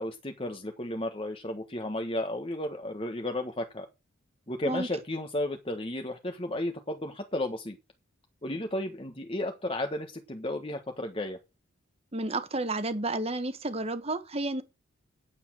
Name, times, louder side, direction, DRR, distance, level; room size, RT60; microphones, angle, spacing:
voice 1, 0.0-3.9 4.5-7.8 8.4-11.4, left 1 dB, 25° left, 1.2 m, -33 dB
voice 2, 12.1-14.6, right 2 dB, 30° right, 1.3 m, -31 dB
9.7 x 8.4 x 6.2 m
head